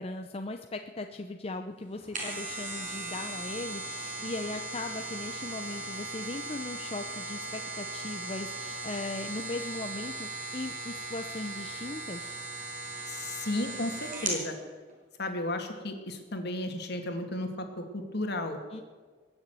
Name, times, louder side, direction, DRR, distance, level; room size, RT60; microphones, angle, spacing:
voice 1, 0.0-12.4 18.7-18.8, left 2 dB, 30° left, 5 dB, 0.7 m, -38 dB
sound 1, 1.9-14.4 14.9-15.0, right 2 dB, 45° right, 5.5 m, -38 dB
voice 2, 13.1-14.5 15.2-18.6, left 1 dB, 60° left, 5 dB, 2.3 m, -34 dB
21.5 x 7.2 x 9.3 m, 1.5 s
head